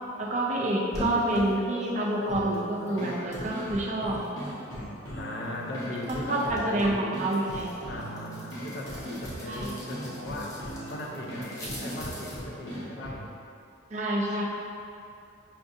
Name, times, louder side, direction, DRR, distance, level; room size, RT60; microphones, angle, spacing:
voice 1, 0.2-4.2 6.1-7.7 9.5-9.7 13.9-14.4, right 1 dB, 35° right, -2 dB, 0.4 m, -28 dB
sound 1, 0.9-4.8 5.2-12.4, left 1 dB, 15° left, 0.6 m, -42 dB
sound 2, 2.3-13.3, equal, 90° left, 1.0 m, -39 dB
voice 2, 5.1-7.1 7.9-10.6 10.9-13.2, left 1 dB, 55° left, -2 dB, 0.5 m, -38 dB
5.7 x 2.5 x 2.6 m, 2.5 s
head